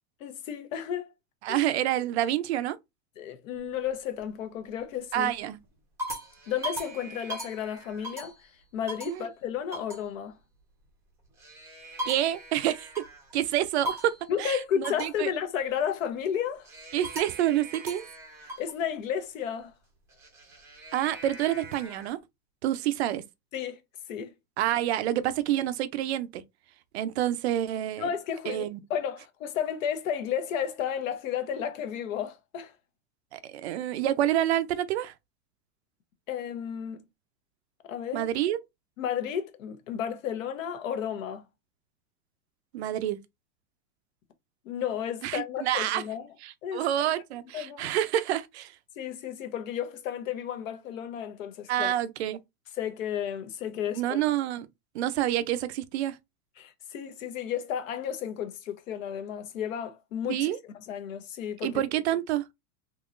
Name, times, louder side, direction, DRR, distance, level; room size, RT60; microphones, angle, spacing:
voice 1, 0.2-1.1 1.5-1.6 3.2-5.3 6.5-8.3 8.7-10.4 14.3-16.7 18.6-19.7 23.5-23.8 24.1-24.3 28.0-32.7 36.3-37.0 37.8-38.3 39.0-41.5 44.6-46.3 46.6-46.9 47.5-47.9 49.0-51.9 52.8-54.2 56.6-60.5 60.7-61.8, left 9 dB, 60° left, 0.9 m, -32 dB
voice 2, 1.4-2.8 5.1-5.6 9.1-9.3 12.0-12.9 13.3-14.1 14.4-15.3 16.9-18.0 20.9-22.2 22.6-23.2 24.6-26.4 26.9-28.1 28.5-28.8 33.3-35.1 38.1-38.6 42.7-43.2 45.2-46.0 46.4-48.7 51.7-52.4 53.9-54.7 54.9-56.2 60.3-60.6 61.6-62.4, right 12 dB, 50° right, 0.5 m, -28 dB
sound 1, 3.5-4.2 4.8-5.2 5.6-8.5 8.9-9.2 9.7-10.0 11.2-13.3 13.8-14.3 14.8-15.2 16.6-18.7 20.1-22.1, right 1 dB, 5° right, 0.6 m, -40 dB
3.7 x 2.9 x 2.4 m
supercardioid pair, 160°, 45 cm